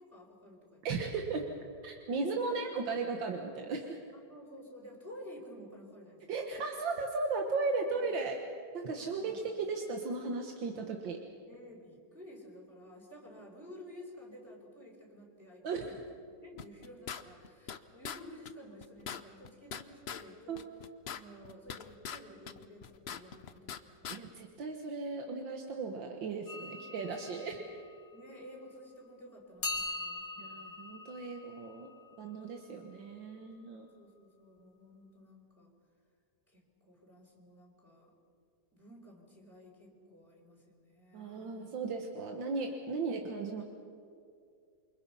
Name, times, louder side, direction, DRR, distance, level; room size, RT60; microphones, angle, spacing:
voice 1, 0.0-0.8 1.3-1.5 2.3-3.0 4.1-6.5 7.8-8.3 8.9-9.5 11.5-16.0 16.4-20.7 21.1-24.3 26.7-27.5 28.1-30.9 32.5-32.8 33.8-35.7 36.5-38.1 38.7-41.7, left 1 dB, 5° right, -4 dB, 4.1 m, -53 dB
voice 2, 0.8-1.4 1.8-4.0 6.3-8.4 8.7-11.2 15.6-15.8 20.5-20.6 24.1-27.6 30.4-31.9 32.2-33.9 41.1-43.6, right 4 dB, 80° right, 3 dB, 2.1 m, -36 dB
sound 1, 16.6-17.8 18.0-18.2 18.5-18.6 18.8-20.2 20.6-22.2 22.5-23.8 24.0-24.2, left 7 dB, 55° left, 0.7 m, -42 dB
sound 2, 26.5-28.9 29.6-33.5, left 3 dB, 90° left, 3.4 m, -43 dB
28.5 x 24.5 x 5.6 m, 2.4 s
omnidirectional pair, 2.0 m